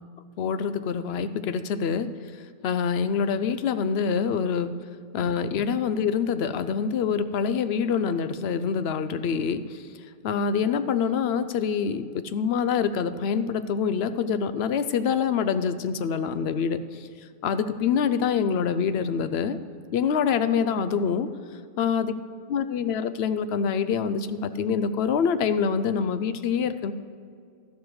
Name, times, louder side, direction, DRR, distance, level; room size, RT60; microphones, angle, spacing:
voice 1, 0.4-2.1 2.6-4.7 5.1-9.6 10.2-17.1 17.4-19.6 19.9-21.3 21.8-22.1 22.5-26.9, left 6 dB, 80° left, 12 dB, 0.8 m, -25 dB
12.5 x 12.0 x 3.1 m, 2.3 s
omnidirectional pair, 1.1 m